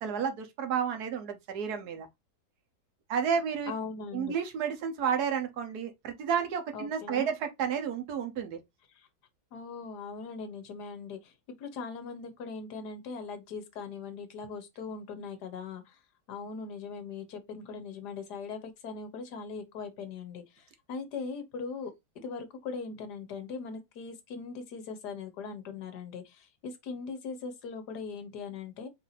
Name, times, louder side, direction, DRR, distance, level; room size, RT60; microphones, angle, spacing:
voice 1, 0.0-2.1 3.1-3.7 4.1-8.6, right 7 dB, 60° right, 1.4 m, -31 dB
voice 2, 3.7-4.3 6.7-7.3 8.9-9.1 9.5-11.3 11.6-16.0 16.3-28.9, left 5 dB, 60° left, 1.5 m, -40 dB
4.7 x 2.8 x 4.0 m
omnidirectional pair, 2.1 m